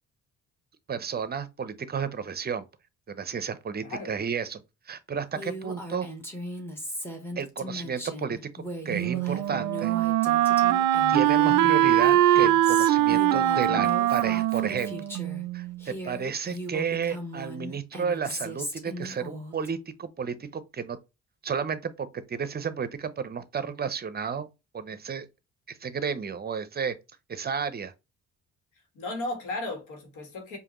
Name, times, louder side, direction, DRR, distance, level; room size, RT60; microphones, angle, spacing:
voice 1, 0.9-2.6 3.1-6.1 7.4-8.4 8.8-9.9 11.1-15.1 15.5-21.0 21.4-24.5 24.7-25.3 25.7-27.0 27.3-27.9, right 6 dB, 30° right, 0.6 m, -32 dB
voice 2, 3.8-4.1 28.9-30.6, left 2 dB, 80° left, 1.5 m, -35 dB
Female speech woman speaking, 5.3-15.4 15.8-19.7, equal, 10° left, 1.2 m, -38 dB
Wind instrument woodwind instrument, 8.9-15.8, right 13 dB, 80° right, 0.4 m, -22 dB
4.9 x 2.7 x 3.0 m
cardioid pair, 90°, 30 cm